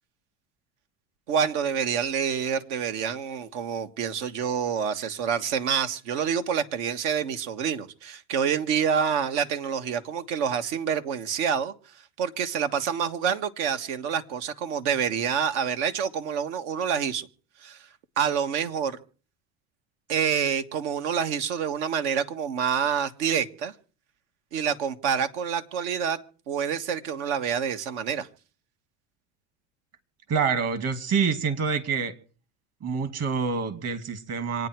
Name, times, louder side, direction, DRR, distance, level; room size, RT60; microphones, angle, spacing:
voice 1, 1.3-11.7 12.2-17.3 17.6-17.8 18.2-19.0 20.1-23.7 24.5-26.2 26.5-28.3, right 7 dB, 85° right, 1.7 m, -27 dB
voice 2, 30.3-32.1 32.8-34.7, right 5 dB, 45° right, 2.6 m, -26 dB
26.5 x 9.4 x 4.6 m
supercardioid pair, 105°, 34 cm